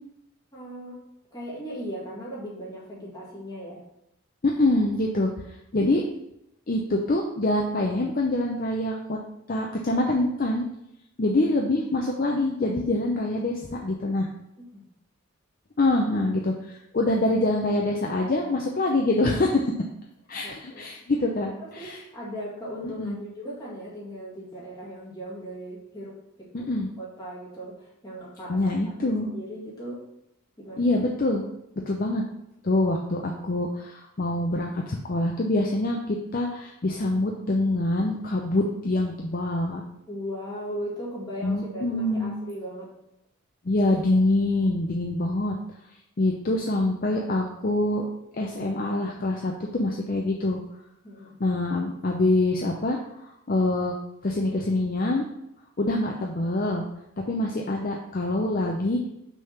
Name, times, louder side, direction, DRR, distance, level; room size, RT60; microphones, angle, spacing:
voice 1, 0.5-1.0 1.3-3.8 14.6-14.8 20.4-20.9 21.4-26.7 27.0-28.7 29.0-30.0 30.6-31.0 40.1-42.9 46.3-46.4 51.0-51.4, equal, 20° left, -6 dB, 2.0 m, -38 dB
voice 2, 4.4-5.3 5.7-6.0 6.7-9.2 9.5-10.6 11.2-14.3 15.8-19.6 20.3-22.0 22.8-23.2 26.5-26.9 28.5-29.3 30.8-31.4 31.9-32.2 32.6-39.8 41.4-42.3 43.6-45.6 46.2-48.0 48.4-50.6 51.4-53.0 53.5-54.0 54.2-55.2 55.8-56.9 57.3-59.0, left 2 dB, 40° left, 0 dB, 0.6 m, -25 dB
6.0 x 3.6 x 5.8 m, 0.82 s
head